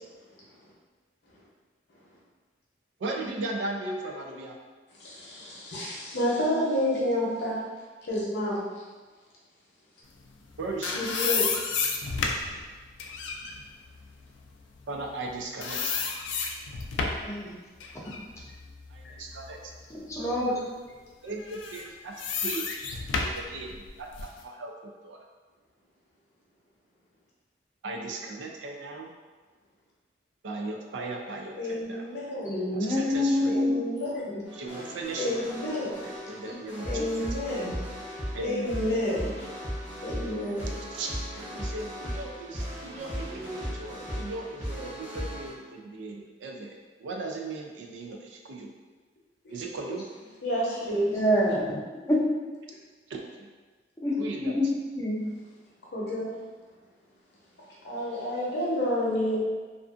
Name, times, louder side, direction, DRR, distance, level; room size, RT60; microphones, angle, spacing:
voice 1, 3.0-4.6 10.6-11.1 14.9-16.0 18.9-19.6 21.2-22.7 23.3-25.2 27.8-29.1 30.4-32.1 32.7-33.6 34.5-35.5 36.3-36.9 37.2-37.3 38.3-38.7 40.9-41.1 41.4-48.7 49.5-50.0 53.1-53.5 54.2-54.6, right 2 dB, 80° right, 1 dB, 0.4 m, -37 dB
voice 2, 5.0-7.6 8.0-8.7 11.0-11.5 19.0-19.1 31.6-32.6 33.4-34.4 35.2-36.1 36.9-37.8 38.4-39.3 40.0-40.7 49.4-49.6 49.9-50.0 50.4-51.2 55.9-56.3 57.8-59.4, left 1 dB, 60° left, -6 dB, 0.7 m, -29 dB
sound 1, 10.4-15.3 15.6-17.3 17.8-19.8 20.2-20.4 21.4-24.4, left 5 dB, 85° left, 0.3 m, -32 dB
voice 3, 19.9-20.5 32.4-33.8 51.1-51.8 52.1-52.2 54.0-54.7 54.9-55.2, left 1 dB, 15° left, -5 dB, 0.5 m, -26 dB
sound 2, 34.5-45.5, equal, 10° right, 0.8 m, -37 dB
2.5 x 2.4 x 2.4 m, 1.3 s
head